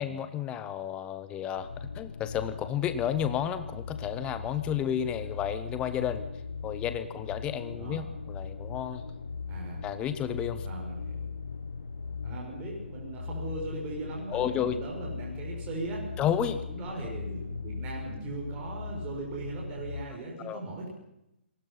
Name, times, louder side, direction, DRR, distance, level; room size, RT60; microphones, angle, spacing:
voice 1, 0.0-6.2 6.6-9.0 9.8-10.7 14.3-14.8 16.2-16.6 20.4-20.6, left 9 dB, 15° left, 11 dB, 1.2 m, -32 dB
sound 1, 1.5-20.0, left 5 dB, 65° left, 1.6 m, -39 dB
voice 2, 9.5-9.8 10.6-11.3 12.2-16.1 16.7-20.9, right 3 dB, 20° right, -2 dB, 6.5 m, -39 dB
27.5 x 19.5 x 5.8 m, 0.86 s
figure-of-eight pair, 130°, 6 cm